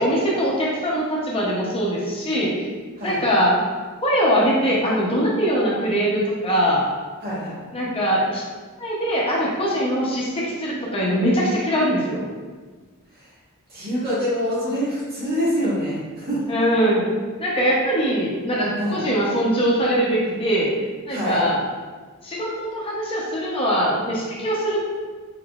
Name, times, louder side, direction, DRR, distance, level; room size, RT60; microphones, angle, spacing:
voice 1, 0.0-2.5 3.0-3.6 4.0-6.8 7.7-8.4 8.8-12.2 16.5-17.1 17.4-20.7 21.1-21.6 22.2-24.8, equal, 25° left, -5 dB, 0.7 m, -22 dB
voice 2, 7.2-7.5 13.7-16.4 18.8-19.0 21.1-21.4, equal, 45° right, -7 dB, 1.3 m, -25 dB
3.9 x 3.6 x 2.3 m, 1.4 s
head